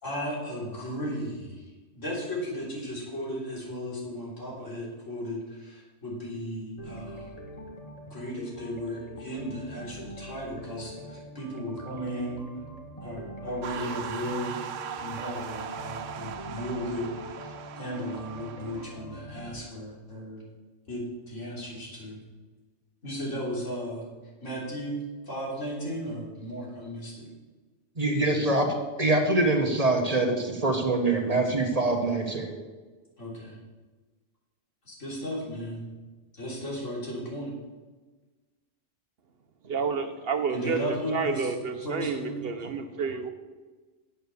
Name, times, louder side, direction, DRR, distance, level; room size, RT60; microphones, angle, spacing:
voice 1, 0.0-7.4 8.1-12.4 13.0-14.5 15.0-17.1 17.3-20.4 20.9-22.2 23.0-24.1 24.4-27.3 33.2-33.6 34.8-35.8 36.3-37.5 40.5-41.5 41.8-42.5, equal, 80° left, -4 dB, 3.8 m, -35 dB
sound 1, 6.8-19.6, equal, 30° left, 1.5 m, -44 dB
sound 2, 13.6-18.8, right 8 dB, 90° right, 1.1 m, -39 dB
voice 2, 28.0-28.7 29.0-32.6, right 2 dB, 35° right, 3 dB, 1.2 m, -24 dB
voice 3, 39.6-43.3, right 5 dB, 55° right, 9 dB, 0.9 m, -30 dB
8.8 x 8.0 x 7.0 m, 1.3 s
omnidirectional pair, 1.3 m